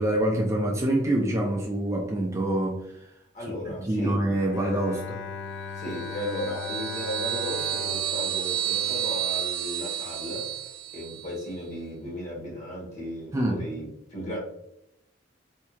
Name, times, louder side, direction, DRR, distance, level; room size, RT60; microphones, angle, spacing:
voice 1, 0.0-3.1 3.8-5.2 13.3-13.7, right 1 dB, 15° right, -1 dB, 0.4 m, -26 dB
voice 2, 3.3-4.2 5.7-10.5 10.9-14.4, equal, 40° left, -3 dB, 1.4 m, -35 dB
Bowed string instrument, 4.3-9.6, left 6 dB, 65° left, 0.4 m, -39 dB
sound 1, 5.9-11.4, right 12 dB, 80° right, 0.6 m, -31 dB
4.4 x 2.7 x 2.3 m, 0.80 s
head